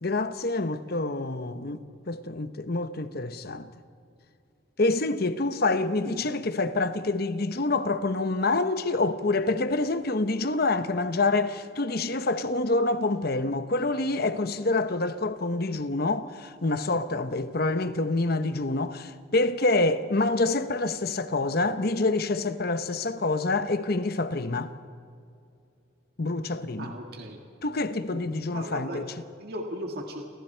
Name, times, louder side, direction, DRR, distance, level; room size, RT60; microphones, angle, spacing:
voice 1, 0.0-1.8 2.1-3.7 4.8-24.7 26.2-26.9 27.6-29.1, left 2 dB, 50° left, 0.9 m, -27 dB
voice 2, 26.8-27.4 28.1-29.0 29.4-30.2, equal, 50° right, 2.0 m, -37 dB
29.5 x 23.5 x 4.5 m
head